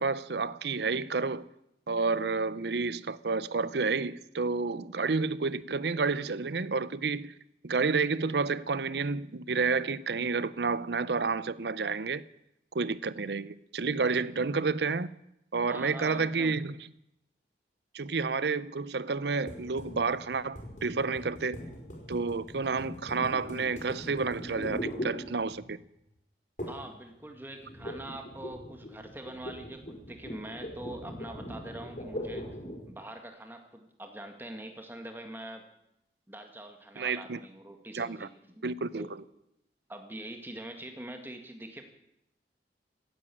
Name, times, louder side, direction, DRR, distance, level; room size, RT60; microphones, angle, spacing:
voice 1, 0.0-1.5 1.9-7.3 7.6-12.2 12.7-15.1 15.5-16.8 17.9-21.6 22.1-25.8 37.0-37.4 37.9-38.3 38.6-39.1, right 4 dB, 70° right, 0.6 m, -30 dB
voice 2, 15.6-16.6 26.7-32.5 32.9-35.6 36.3-38.3 38.5-38.6 39.0-39.1 39.9-41.8, right 1 dB, 10° right, 1.9 m, -44 dB
sound 1, 19.5-25.8 26.6-27.0 27.2-32.9, equal, 45° left, 4.8 m, -41 dB
15.5 x 10.5 x 8.5 m
head